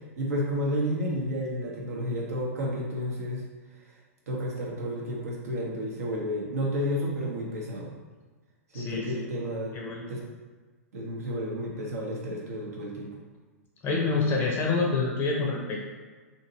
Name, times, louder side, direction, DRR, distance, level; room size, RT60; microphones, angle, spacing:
voice 1, 0.2-3.4 4.3-7.9 8.7-9.8 10.1-10.2 10.9-13.1, equal, 70° right, -2 dB, 0.9 m, -31 dB
voice 2, 8.7-9.3 9.7-10.0 13.8-15.9, left 3 dB, 25° left, -1 dB, 0.5 m, -27 dB
2.8 x 2.7 x 2.7 m, 1.4 s
hypercardioid pair, 110°, 8 cm